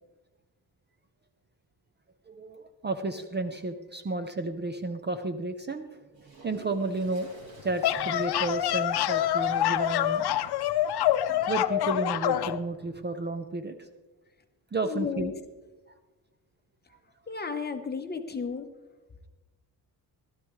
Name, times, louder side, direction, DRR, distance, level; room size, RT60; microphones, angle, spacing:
voice 1, 2.3-7.3 7.6-10.3 11.5-13.9 14.7-15.3, right 3 dB, 25° right, 9 dB, 0.6 m, -32 dB
Toilet flush, 6.1-12.0, right 2 dB, 60° right, 3.9 m, -52 dB
sound 1, 7.6-12.6, left 12 dB, 70° left, 0.6 m, -26 dB
voice 2, 14.8-15.3 17.3-18.7, left 5 dB, 25° left, 6 dB, 1.0 m, -33 dB
16.0 x 13.0 x 3.2 m, 1.2 s
wide cardioid pair, 140°, 40 cm